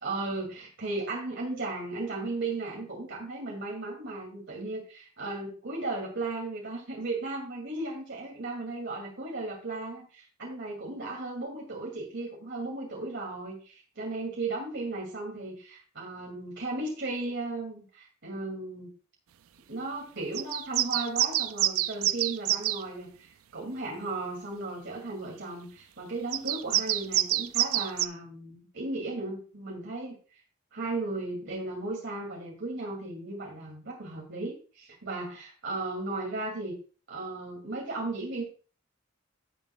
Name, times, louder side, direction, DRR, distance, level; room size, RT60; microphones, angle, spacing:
voice 1, 0.0-18.9 19.7-30.2 30.7-36.8 37.1-38.4, right 2 dB, 60° right, -2 dB, 2.3 m, -35 dB
sound 1, 20.3-22.8 26.3-28.1, right 14 dB, 90° right, 0.4 m, -27 dB
15.5 x 7.1 x 2.2 m, 0.37 s
head